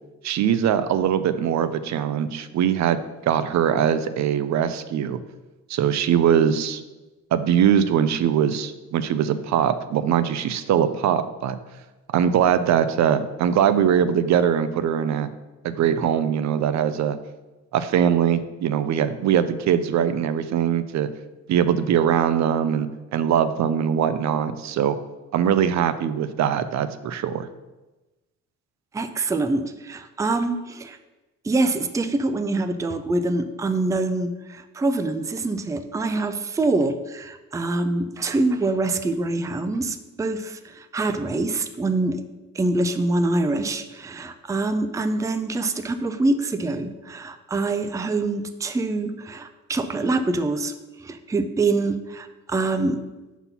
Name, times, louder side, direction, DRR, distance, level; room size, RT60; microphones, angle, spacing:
voice 1, 0.2-5.2 5.7-6.8 7.3-11.6 12.1-15.3 15.6-17.2 17.7-21.1 21.5-25.0 25.3-27.5, right 9 dB, 65° right, 12 dB, 0.5 m, -22 dB
voice 2, 28.9-31.0 31.4-42.2 42.5-50.7 51.0-53.0, right 2 dB, 10° right, 9 dB, 0.4 m, -25 dB
5.7 x 4.1 x 5.5 m, 1.1 s
cardioid pair, 90°, 30 cm